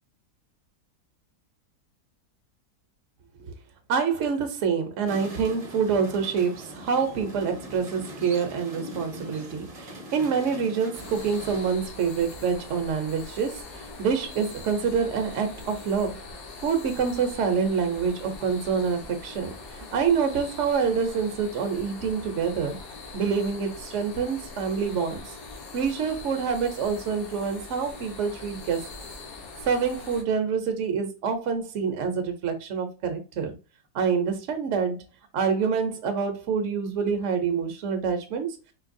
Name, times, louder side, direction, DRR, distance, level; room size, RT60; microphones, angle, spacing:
voice 1, 3.9-16.2 16.6-22.8 23.1-25.2 25.7-28.8 29.7-33.5 33.9-35.0 35.3-38.5, right 6 dB, 55° right, 1.0 m, -26 dB
sound 1, 5.1-11.7, equal, 30° right, 0.8 m, -41 dB
sound 2, 10.9-30.2, left 3 dB, 75° left, 1.5 m, -42 dB
4.5 x 2.8 x 2.6 m
omnidirectional pair, 1.7 m